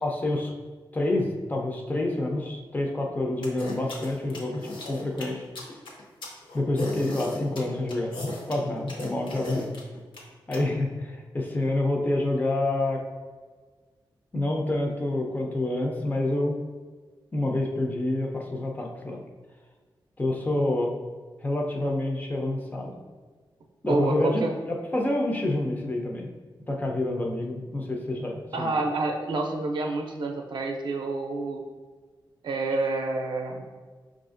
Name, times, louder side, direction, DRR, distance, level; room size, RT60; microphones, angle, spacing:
voice 1, 0.0-0.5 0.9-5.4 6.5-8.1 8.5-9.8 10.5-13.0 14.3-16.6 17.3-19.2 20.2-20.9 21.4-22.9 23.8-26.3 26.7-28.7, left 1 dB, 20° left, 1 dB, 0.4 m, -28 dB
sound 1, 3.4-10.6, left 1 dB, 75° left, 0.8 m, -35 dB
voice 2, 23.8-24.5 28.5-31.6 32.4-33.7, right 3 dB, 65° right, 2 dB, 0.5 m, -28 dB
5.5 x 2.4 x 2.5 m, 1.4 s
wide cardioid pair, 165°, 8 cm